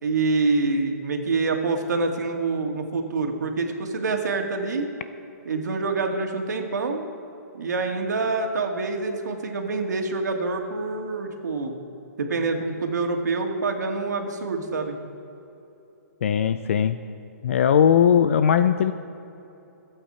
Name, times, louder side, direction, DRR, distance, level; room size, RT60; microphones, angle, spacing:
voice 1, 0.0-4.9 5.4-7.0 7.5-11.8 12.2-14.9, right 3 dB, 80° right, 3 dB, 2.2 m, -26 dB
voice 2, 16.2-17.0 17.4-18.9, left 8 dB, 50° left, 11 dB, 0.5 m, -19 dB
26.5 x 8.8 x 4.4 m, 2.9 s
hypercardioid pair, 170°, 9 cm